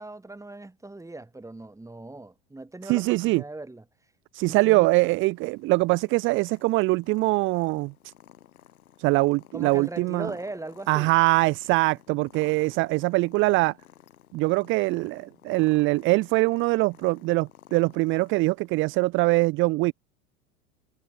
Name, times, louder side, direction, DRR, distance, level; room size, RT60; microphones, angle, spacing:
voice 1, 0.0-3.8 4.5-4.9 9.5-11.1, right 2 dB, 5° right, 2.7 m, -39 dB
voice 2, 2.8-3.4 4.3-8.1 9.0-10.3 10.9-13.7 14.3-19.9, right 22 dB, 30° right, 0.4 m, -23 dB
Purr, 5.2-19.1, left 11 dB, 80° left, 7.5 m, -54 dB
hypercardioid pair, 90°, 42 cm